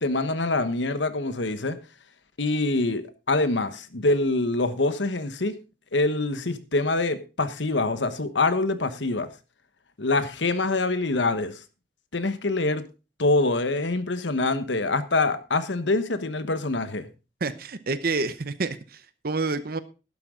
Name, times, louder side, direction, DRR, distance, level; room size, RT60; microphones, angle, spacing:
voice 1, 0.0-1.8 2.4-5.5 5.9-9.3 10.0-11.6 12.1-12.8 13.2-17.1, left 2 dB, 80° left, 1.2 m, -25 dB
voice 2, 17.4-19.8, right 3 dB, 55° right, 0.8 m, -28 dB
12.0 x 11.5 x 3.8 m
head